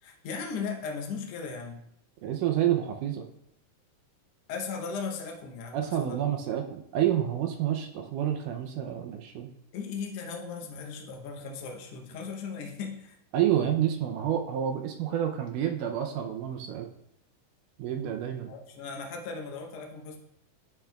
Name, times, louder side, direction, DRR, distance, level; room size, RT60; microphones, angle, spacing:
voice 1, 0.0-1.8 4.5-6.2 9.7-13.2 18.5-20.2, left 5 dB, 75° left, 2 dB, 1.5 m, -37 dB
voice 2, 2.2-3.3 5.7-9.5 13.3-16.9 17.8-18.5, right 10 dB, 80° right, 4 dB, 1.9 m, -29 dB
10.0 x 6.0 x 2.3 m, 0.74 s
omnidirectional pair, 4.0 m